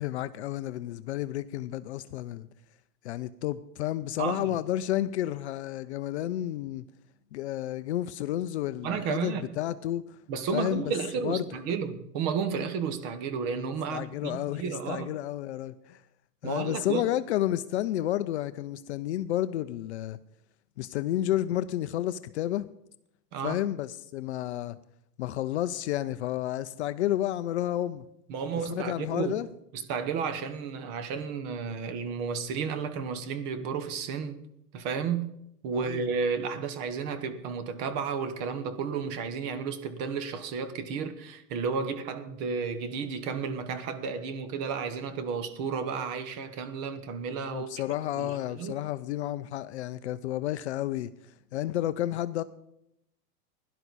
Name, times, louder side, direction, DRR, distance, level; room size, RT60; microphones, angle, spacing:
voice 1, 0.0-2.5 3.0-6.8 7.3-10.0 10.5-10.8 11.2-11.5 13.9-16.0 16.4-20.2 20.8-22.7 23.4-24.8 25.2-28.0 28.7-29.5 35.8-36.0 47.5-51.1 51.5-52.4, left 13 dB, 45° left, 0.5 m, -31 dB
voice 2, 4.2-4.6 8.8-9.5 10.3-15.1 16.4-17.0 23.3-23.6 28.3-29.3 29.7-34.4 34.7-35.3 35.6-47.7 48.2-48.8, right 6 dB, 35° right, 1.1 m, -32 dB
16.5 x 11.0 x 4.1 m
hypercardioid pair, 145°, 49 cm